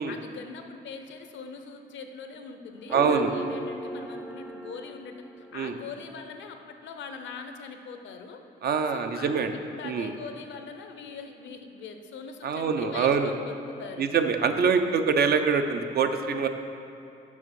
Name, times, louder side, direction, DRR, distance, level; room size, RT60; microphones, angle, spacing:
voice 1, 0.0-8.4 8.9-9.3 9.7-13.5 13.8-14.1, left 5 dB, 70° left, 6 dB, 0.7 m, -42 dB
sound 1, 2.8-6.2, right 1 dB, 5° right, 0.5 m, -36 dB
voice 2, 2.9-3.3 5.5-5.7 8.6-9.5 9.8-10.1 12.4-13.3 14.0-16.5, right 6 dB, 55° right, 7 dB, 0.6 m, -24 dB
6.3 x 5.5 x 5.3 m, 2.7 s
cardioid pair, 90°, 20 cm